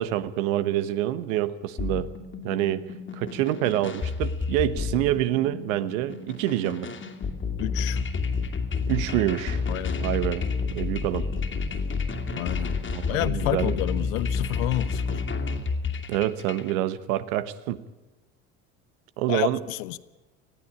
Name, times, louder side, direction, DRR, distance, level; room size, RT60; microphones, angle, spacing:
voice 1, 0.0-2.1 2.4-2.8 3.1-6.9 8.9-9.6 10.0-10.4 10.7-11.3 12.9-13.7 16.1-17.8 19.2-19.6, right 13 dB, 75° right, 1.2 m, -26 dB
sound 1, 1.8-16.7, left 4 dB, 30° left, 2.4 m, -30 dB
voice 2, 7.6-8.0 9.7-10.0 12.4-12.7 13.1-15.2 19.3-20.0, left 18 dB, 75° left, 0.9 m, -30 dB
19.5 x 14.5 x 9.8 m
hypercardioid pair, 80°, 40 cm